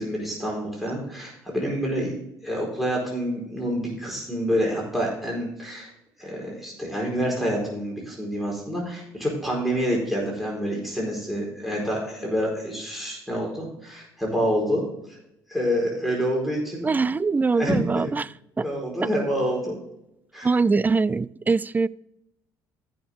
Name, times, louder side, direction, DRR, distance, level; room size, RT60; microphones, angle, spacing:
voice 1, 0.0-2.2 2.4-5.9 6.2-14.8 15.1-15.2 15.5-16.9 17.6-18.0 18.6-19.7 20.3-20.5, equal, ahead, -3 dB, 4.6 m, -27 dB
voice 2, 16.8-18.7 19.0-19.1 20.4-21.9, right 4 dB, 20° right, 21 dB, 0.4 m, -23 dB
14.5 x 6.4 x 3.7 m, 0.81 s
supercardioid pair, 80°, 8 cm